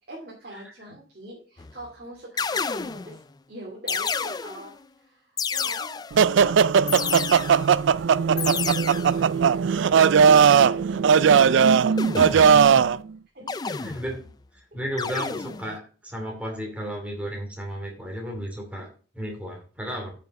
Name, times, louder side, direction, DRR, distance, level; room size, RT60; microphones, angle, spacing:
voice 1, 0.1-6.0 6.3-7.6 8.3-12.4 13.3-13.7, right 1 dB, 50° right, -2 dB, 2.4 m, -43 dB
sound 1, 1.6-1.9 2.4-3.2 3.9-4.8 5.4-6.3 6.9-7.8 8.4-9.2 12.0-12.7 13.5-14.3 15.0-15.7, left 5 dB, 20° left, 0.3 m, -30 dB
sound 2, 6.2-13.0, right 6 dB, 75° right, 0.3 m, -18 dB
voice 2, 13.6-14.2 14.5-18.9 19.1-20.1, equal, 5° right, 0 dB, 2.6 m, -34 dB
8.9 x 5.8 x 5.2 m, 0.39 s
head